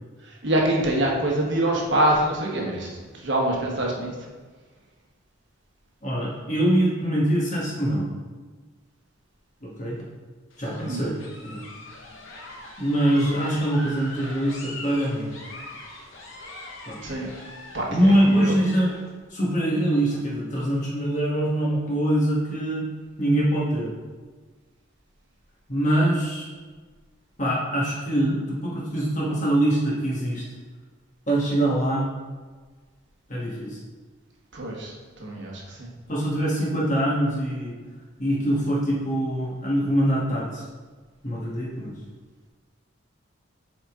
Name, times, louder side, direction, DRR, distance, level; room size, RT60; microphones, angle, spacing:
voice 1, 0.2-4.1 10.8-11.0 17.0-17.3 17.7-18.5 34.5-34.9 35.2-35.9, right 1 dB, 60° right, -2 dB, 1.2 m, -25 dB
voice 2, 6.0-8.1 9.6-10.0 10.6-11.6 12.8-15.3 16.9-17.0 17.9-18.9 19.3-22.9 23.2-23.9 25.7-26.5 27.4-30.4 31.3-32.1 33.3-33.8 36.1-37.7 38.2-40.6 41.2-41.9, right 1 dB, 35° left, -5 dB, 1.5 m, -23 dB
sound 1, 10.5-19.1, left 2 dB, 75° left, 1.0 m, -42 dB
7.7 x 4.0 x 3.7 m, 1.4 s
head